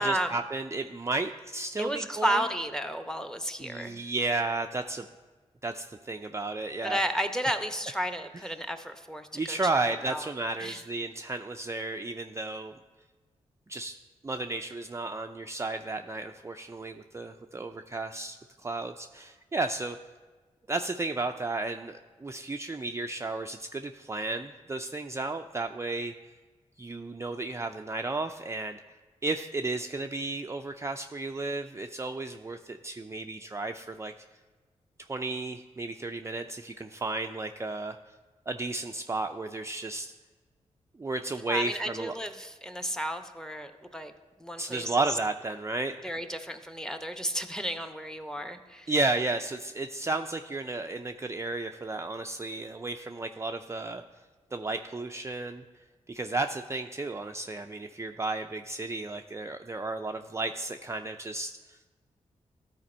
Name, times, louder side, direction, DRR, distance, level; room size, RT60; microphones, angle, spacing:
voice 1, 0.0-2.4 3.6-5.0 5.6-7.0 9.3-12.7 13.7-14.0 14.2-20.0 20.7-26.1 26.8-29.0 29.2-34.1 35.1-38.0 38.5-40.1 41.0-42.1 44.6-46.1 48.9-54.0 54.5-55.6 56.1-62.0, right 2 dB, 20° right, 5 dB, 0.4 m, -33 dB
voice 2, 1.8-4.0 6.8-9.6 10.0-10.3 10.6-10.8 41.5-44.1 44.4-45.2 46.0-48.9, equal, 5° left, 8 dB, 0.8 m, -32 dB
12.5 x 4.4 x 4.3 m, 1.3 s
cardioid pair, 50°, 13 cm